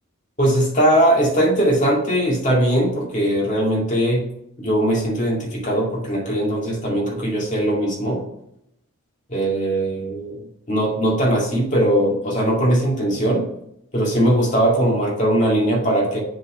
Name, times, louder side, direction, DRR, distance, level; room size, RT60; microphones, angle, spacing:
voice 1, 0.4-4.2 4.6-8.2 9.3-10.4 10.7-13.5 13.9-16.2, right 1 dB, 35° left, -2 dB, 2.1 m, -20 dB
7.6 x 4.1 x 6.0 m, 0.76 s
head